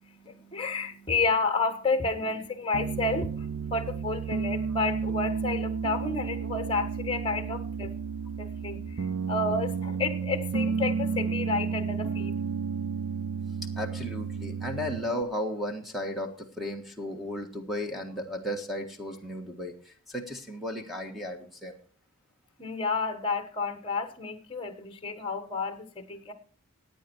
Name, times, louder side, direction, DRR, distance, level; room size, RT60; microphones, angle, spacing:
voice 1, 0.0-12.5 22.6-26.3, left 3 dB, 25° left, 8 dB, 1.4 m, -31 dB
Piano, 2.7-15.2, right 5 dB, 70° right, 0.5 m, -32 dB
voice 2, 13.8-21.7, left 1 dB, ahead, 3 dB, 1.5 m, -35 dB
15.5 x 9.2 x 4.6 m, 0.42 s
head